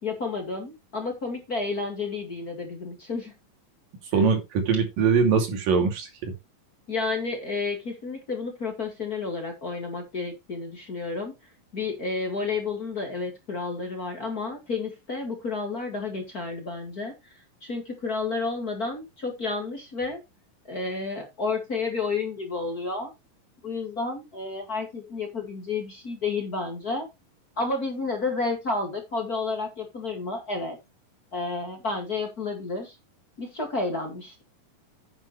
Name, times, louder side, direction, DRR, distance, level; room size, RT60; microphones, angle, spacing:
voice 1, 0.0-3.3 4.1-4.3 6.9-11.3 11.7-20.2 20.7-23.1 23.6-27.1 27.6-30.8 31.3-33.0 33.4-34.4, left 3 dB, 30° left, 3 dB, 2.2 m, -31 dB
voice 2, 4.1-6.3, right 5 dB, 80° right, 4 dB, 4.2 m, -22 dB
9.8 x 9.1 x 3.2 m, 0.22 s
omnidirectional pair, 3.9 m